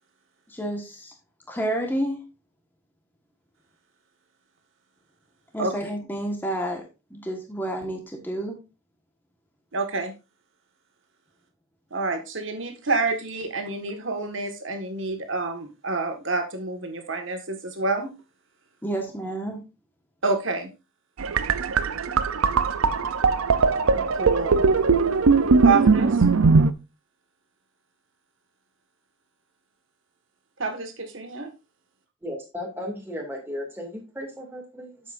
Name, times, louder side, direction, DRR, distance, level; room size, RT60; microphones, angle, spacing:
voice 1, 0.5-1.1 1.5-2.2 5.5-6.8 7.1-8.6 18.8-19.6, right 1 dB, 10° left, 1.4 m, -30 dB
voice 2, 9.7-10.1 11.9-18.1 20.2-20.7 23.9-24.6 25.6-26.2 30.6-31.5, right 3 dB, 65° right, 1.7 m, -28 dB
sound 1, 21.2-26.7, right 4 dB, 90° right, 0.6 m, -20 dB
voice 3, 32.2-35.0, left 1 dB, 10° right, 2.3 m, -35 dB
9.5 x 7.3 x 2.6 m
head